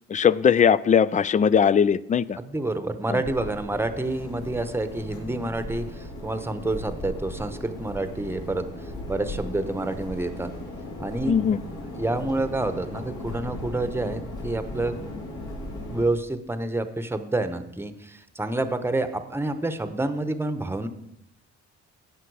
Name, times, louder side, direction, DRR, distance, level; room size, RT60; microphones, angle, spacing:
voice 1, 0.1-2.4 3.1-3.2 11.3-11.6, left 7 dB, 25° left, 20 dB, 0.3 m, -20 dB
voice 2, 2.4-10.5 11.0-11.4 11.9-15.0 15.9-20.9, right 2 dB, 10° right, 10 dB, 0.9 m, -28 dB
sound 1, 3.2-16.0, left 1 dB, 75° left, 4.5 m, -37 dB
16.5 x 5.8 x 4.8 m, 0.79 s
cardioid pair, 90°, 30 cm